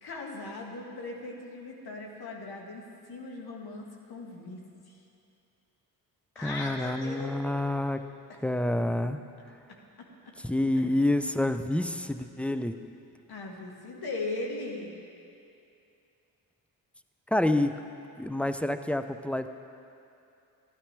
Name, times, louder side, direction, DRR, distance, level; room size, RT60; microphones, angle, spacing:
voice 1, 0.0-5.0 6.4-7.4 8.3-8.4 9.7-10.3 10.8-10.9 13.3-15.0, left 2 dB, 55° left, 0 dB, 1.8 m, -39 dB
voice 2, 6.4-8.0 8.4-9.2 10.4-12.7 17.3-17.7 18.2-19.5, left 1 dB, 5° left, 9 dB, 0.4 m, -28 dB
12.5 x 11.0 x 3.3 m, 2.6 s
hypercardioid pair, 45°, 45 cm